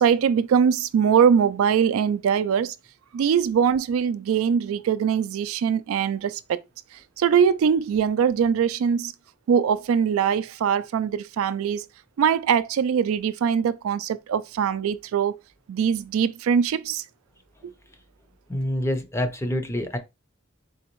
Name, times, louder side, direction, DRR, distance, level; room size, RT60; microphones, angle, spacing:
voice 1, 0.0-2.7 3.1-6.6 7.2-9.1 9.5-11.8 12.2-15.4 15.7-17.0, right 7 dB, 70° right, 0.3 m, -22 dB
voice 2, 18.5-20.0, left 1 dB, 15° left, 0.6 m, -26 dB
3.9 x 3.4 x 2.9 m
head